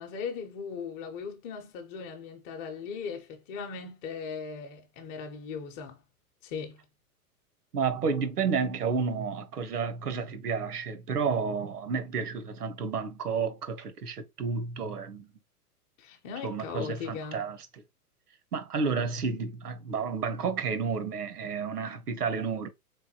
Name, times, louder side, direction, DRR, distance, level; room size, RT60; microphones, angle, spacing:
voice 1, 0.0-6.0 6.4-6.8 16.0-17.4, left 6 dB, 25° left, 0.8 m, -38 dB
voice 2, 7.7-15.3 16.4-17.8 18.5-22.7, right 5 dB, 75° right, 1.1 m, -31 dB
3.8 x 3.4 x 2.8 m
figure-of-eight pair, 110°, 46 cm